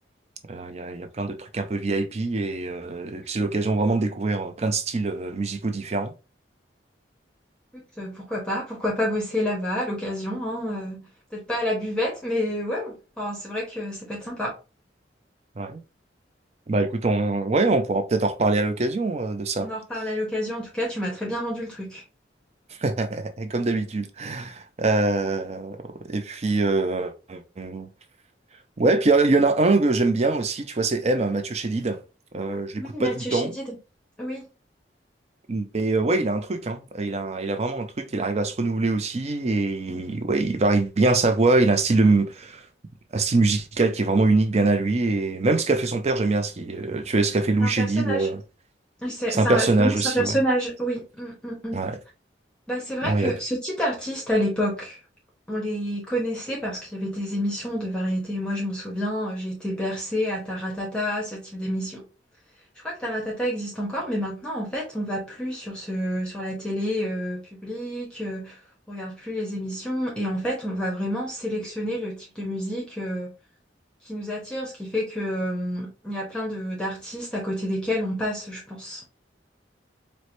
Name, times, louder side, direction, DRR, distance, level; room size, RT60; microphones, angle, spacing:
voice 1, 0.5-6.1 15.6-15.8 16.7-19.7 22.8-27.9 28.8-32.0 32.3-33.5 35.5-42.6 43.1-48.4 49.3-50.4 51.7-52.0 53.0-53.3, right 3 dB, 35° right, 0.5 m, -23 dB
voice 2, 7.7-14.6 19.6-22.0 32.8-33.8 34.2-34.4 47.6-48.3 49.0-51.8 52.7-55.0 55.5-62.0 62.8-68.6 68.9-73.3 74.0-79.0, equal, 5° left, 0.7 m, -29 dB
4.6 x 2.1 x 2.6 m
head